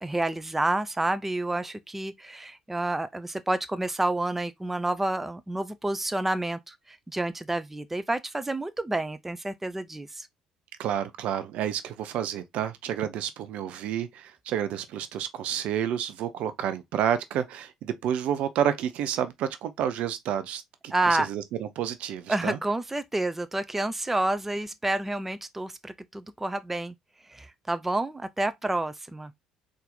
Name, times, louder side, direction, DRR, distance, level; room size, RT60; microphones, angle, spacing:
voice 1, 0.0-10.3 20.9-21.3 22.3-26.9 27.3-29.3, right 2 dB, 10° right, 0.4 m, -29 dB
voice 2, 10.8-22.6, right 9 dB, 55° right, 0.6 m, -30 dB
4.0 x 2.6 x 3.9 m
figure-of-eight pair, 55°, 3 cm